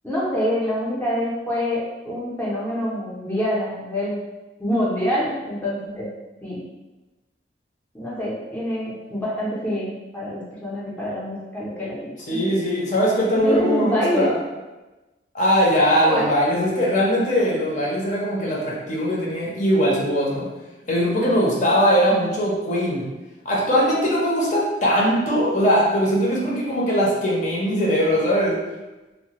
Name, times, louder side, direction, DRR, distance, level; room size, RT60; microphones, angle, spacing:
voice 1, 0.0-4.2 4.6-6.1 6.4-6.6 7.9-12.0 12.3-12.5 13.3-14.3 16.1-16.2 22.1-22.3, equal, 10° left, -8 dB, 0.6 m, -26 dB
voice 2, 12.3-14.4 15.3-20.5 20.9-23.1 23.4-28.6, equal, 45° left, -4 dB, 0.7 m, -20 dB
3.1 x 2.1 x 2.9 m, 1.1 s
head